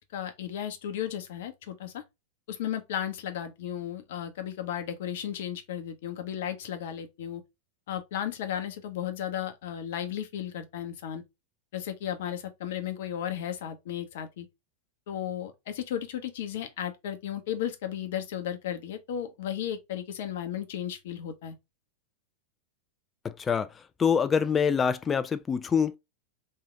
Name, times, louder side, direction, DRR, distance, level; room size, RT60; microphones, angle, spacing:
voice 1, 0.1-2.0 2.5-7.4 7.9-11.2 11.7-14.5 15.1-21.6, left 10 dB, 55° left, 0.7 m, -34 dB
voice 2, 23.2-23.7 24.0-26.0, left 6 dB, 20° left, 0.3 m, -25 dB
3.2 x 2.7 x 3.6 m
figure-of-eight pair, 90°, 0 cm